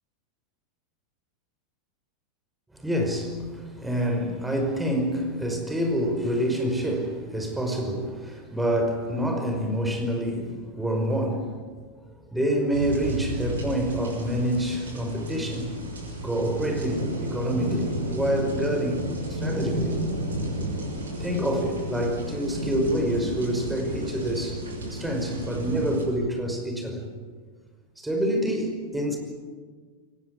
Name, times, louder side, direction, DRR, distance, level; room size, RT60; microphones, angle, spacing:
voice 1, 2.7-11.5 12.3-15.8 16.2-20.0 21.2-24.6 24.9-27.1 28.0-29.2, equal, 5° right, 3 dB, 5.4 m, -27 dB
sound 1, 12.7-26.0, right 1 dB, 70° right, 6.3 m, -32 dB
23.0 x 19.0 x 9.9 m, 1.5 s
figure-of-eight pair, 90°, 0 cm